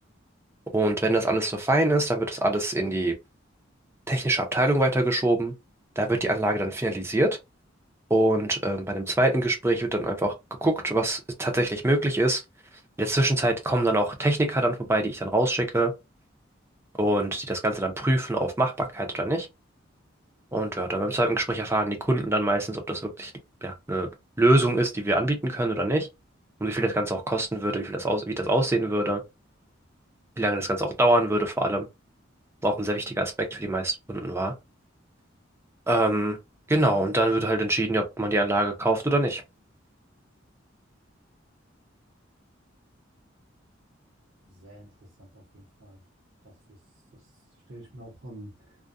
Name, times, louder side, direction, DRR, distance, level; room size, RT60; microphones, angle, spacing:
voice 1, 0.7-3.1 4.1-5.5 6.0-7.4 8.1-10.3 10.6-12.4 13.0-15.9 17.0-19.5 20.5-23.3 23.6-24.1 24.4-26.1 26.6-29.2 30.4-31.9 32.6-34.5 35.9-36.4 36.7-39.4, right 1 dB, 15° right, 0.5 m, -24 dB
voice 2, 44.5-44.9 45.2-46.0 46.4-46.5 47.7-48.5, right 1 dB, 60° right, 0.9 m, -46 dB
2.4 x 2.1 x 2.5 m
head